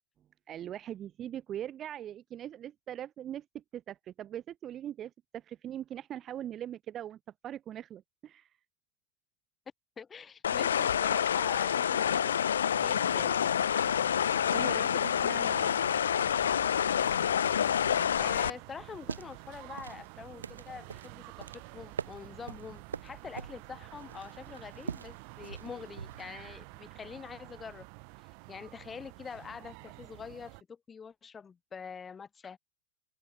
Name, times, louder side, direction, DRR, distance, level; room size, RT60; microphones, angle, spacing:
voice 1, 0.5-8.5 14.5-15.8, right 11 dB, 30° right, 1.6 m, -41 dB
voice 2, 10.0-12.4 12.8-13.6 18.2-27.9 28.5-32.6, left 6 dB, 20° left, 7.5 m, -45 dB
sound 1, 10.4-18.5, left 8 dB, 65° left, 0.6 m, -28 dB
sound 2, 12.8-30.6, right 40 dB or more, 45° right, 3.0 m, -50 dB
sound 3, 18.9-26.4, right 6 dB, 75° right, 1.0 m, -43 dB
figure-of-eight pair, 90°, 0 cm